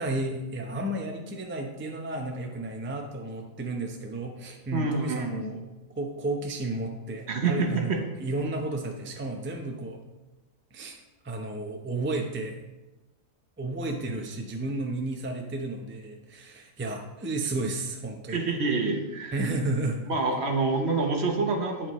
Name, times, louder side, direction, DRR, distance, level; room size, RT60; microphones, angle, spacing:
voice 1, 0.0-10.0 10.7-11.0 11.2-12.5 13.6-18.4 19.3-20.1, right 2 dB, 10° right, 2 dB, 0.6 m, -32 dB
voice 2, 4.7-5.5 7.3-8.0 18.3-19.4 20.1-21.9, right 3 dB, 55° right, 3 dB, 1.1 m, -27 dB
8.7 x 7.3 x 3.1 m, 1.1 s
omnidirectional pair, 1.4 m